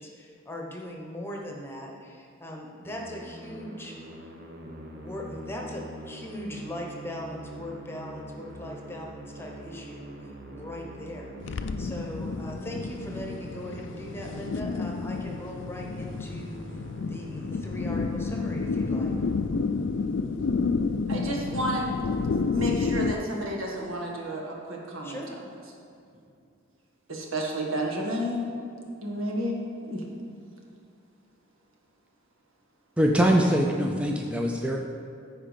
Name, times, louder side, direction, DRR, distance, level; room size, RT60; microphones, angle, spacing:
voice 1, 0.0-4.0 4.9-19.1 25.0-25.4, left 1 dB, 10° left, 0 dB, 1.1 m, -40 dB
Musical instrument, 2.9-20.0, right 1 dB, 50° right, 1.1 m, -43 dB
sound 1, 11.4-23.1, left 4 dB, 60° left, 0.4 m, -30 dB
voice 2, 21.1-25.2 27.1-28.5 29.0-29.6 29.9-30.0, equal, 80° right, -1 dB, 1.7 m, -31 dB
voice 3, 33.0-34.8, equal, 5° right, 0 dB, 0.5 m, -23 dB
14.5 x 4.9 x 5.2 m, 2.5 s
head